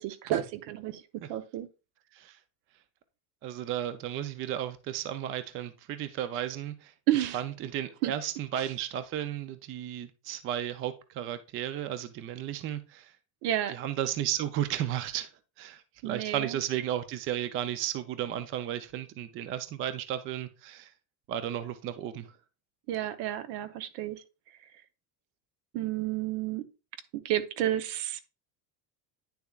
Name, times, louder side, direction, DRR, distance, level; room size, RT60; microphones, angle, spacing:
voice 1, 0.0-1.0 1.3-1.7 7.1-7.4 8.0-8.1 8.5-8.6 13.4-13.7 16.0-16.6 22.9-24.2 25.7-26.6 27.2-28.2, right 12 dB, 70° right, 0.9 m, -31 dB
voice 2, 3.4-6.9 7.3-13.1 13.7-15.3 15.6-20.9 21.3-22.3, right 11 dB, 30° right, 0.4 m, -34 dB
9.6 x 6.9 x 2.3 m
cardioid pair, 170°, 42 cm